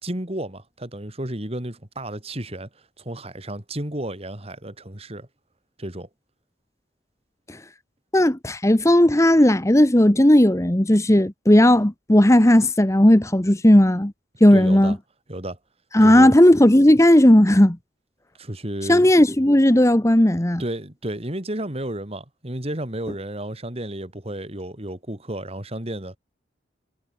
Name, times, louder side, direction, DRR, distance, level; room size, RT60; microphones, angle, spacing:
voice 1, 0.0-2.7 3.0-5.3 5.8-6.1 14.5-15.0 15.3-15.6 16.0-16.3 18.4-19.0 20.6-26.2, right 1 dB, 35° right, 3.3 m, -32 dB
voice 2, 8.1-14.1 14.4-14.9 15.9-17.8 18.9-20.6, left 1 dB, 15° left, 1.2 m, -15 dB
head